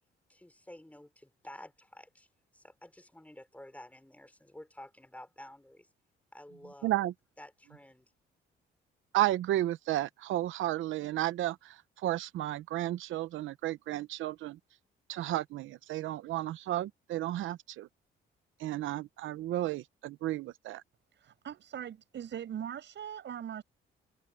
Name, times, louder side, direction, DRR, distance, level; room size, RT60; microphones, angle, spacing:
voice 1, 0.3-2.3 2.5-5.9 6.3-6.9 7.4-8.1, left 1 dB, 5° left, 5.5 m, -51 dB
voice 2, 6.8-7.1 9.1-14.6 15.1-17.9 18.6-20.8, right 14 dB, 85° right, 0.9 m, -33 dB
voice 3, 21.1-23.6, right 9 dB, 65° right, 7.2 m, -41 dB
cardioid pair, 90°, 20 cm